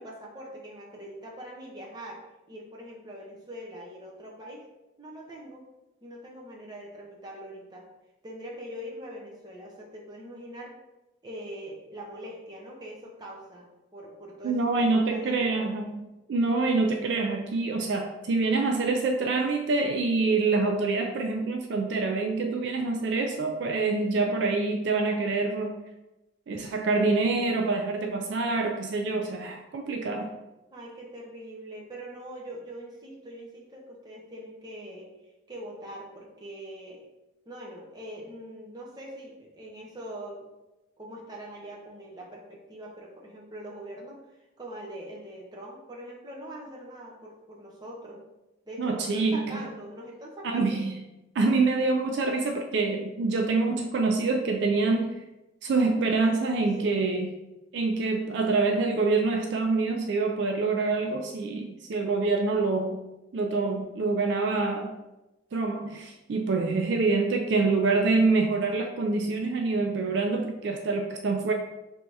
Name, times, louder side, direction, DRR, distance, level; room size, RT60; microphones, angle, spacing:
voice 1, 0.0-2.2 2.5-4.6 5.0-5.6 6.0-7.9 8.2-10.7 11.2-13.7 13.9-15.7 30.7-35.1 35.5-37.0 37.5-40.5 41.0-44.2 44.6-48.2 48.7-50.8 56.8-57.1, equal, 20° right, -3 dB, 0.7 m, -42 dB
voice 2, 14.4-16.0 16.3-25.8 26.5-30.3 48.8-49.7 50.4-51.0 51.4-55.2 55.6-57.3 57.7-63.0 63.3-65.0 65.5-71.5, right 3 dB, 60° right, 4 dB, 0.3 m, -26 dB
3.4 x 2.7 x 4.5 m, 1.0 s
head